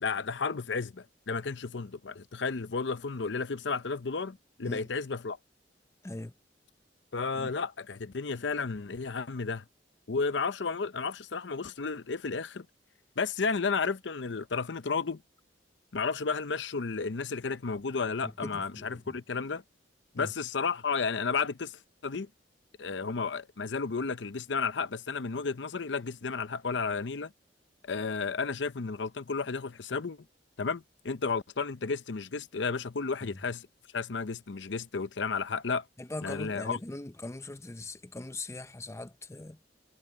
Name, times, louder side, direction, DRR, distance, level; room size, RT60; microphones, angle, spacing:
voice 1, 0.0-5.4 7.1-9.6 10.1-12.7 13.2-15.2 15.9-19.6 20.1-22.3 22.8-27.3 27.8-30.2 30.6-33.7 33.9-35.9 36.2-36.8, left 4 dB, 75° left, 0.7 m, -32 dB
voice 2, 18.2-19.2 20.2-20.3 33.2-33.4 36.0-39.6, left 2 dB, 15° left, 0.6 m, -41 dB
head